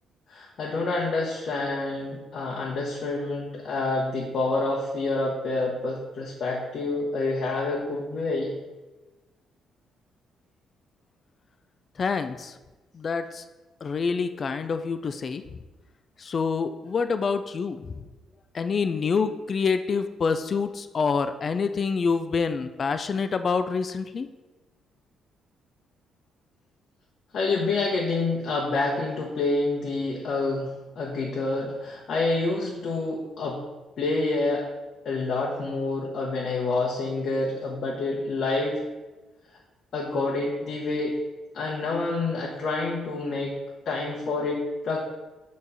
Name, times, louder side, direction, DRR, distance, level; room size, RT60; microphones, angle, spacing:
voice 1, 0.3-8.5 27.3-33.6 34.0-34.7 35.0-38.8 39.9-41.2 41.5-43.5 43.9-45.0, left 3 dB, 60° left, -2 dB, 0.9 m, -28 dB
voice 2, 12.0-12.6 12.9-13.4 13.8-15.4 16.2-18.0 18.5-24.3, left 5 dB, 45° left, 10 dB, 0.3 m, -27 dB
6.7 x 3.1 x 5.5 m, 1.2 s
cardioid pair, 90°, 0 cm